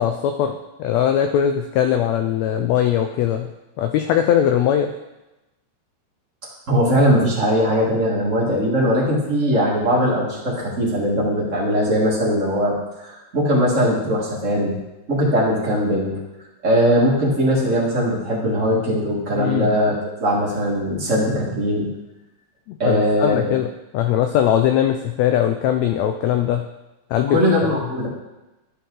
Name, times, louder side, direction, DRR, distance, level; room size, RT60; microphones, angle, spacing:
voice 1, 0.0-3.5 3.8-4.9 19.4-19.7 22.7-23.7 23.9-26.7 27.1-27.4, left 10 dB, 80° left, 6 dB, 1.6 m, -20 dB
voice 2, 6.7-14.8 15.1-16.2 16.6-19.9 20.2-21.9 22.8-23.5 27.3-28.1, equal, 30° right, -5 dB, 1.6 m, -20 dB
11.0 x 5.6 x 3.8 m, 1.0 s
omnidirectional pair, 3.5 m